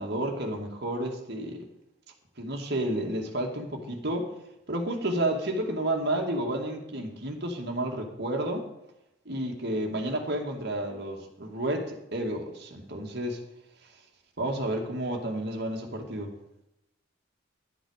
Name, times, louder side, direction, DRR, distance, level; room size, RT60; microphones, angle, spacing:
voice 1, 0.0-1.7 2.4-4.3 4.7-8.7 9.3-13.4 14.4-16.3, right 1 dB, 60° right, 2 dB, 2.3 m, -31 dB
11.5 x 8.0 x 6.5 m, 0.85 s
head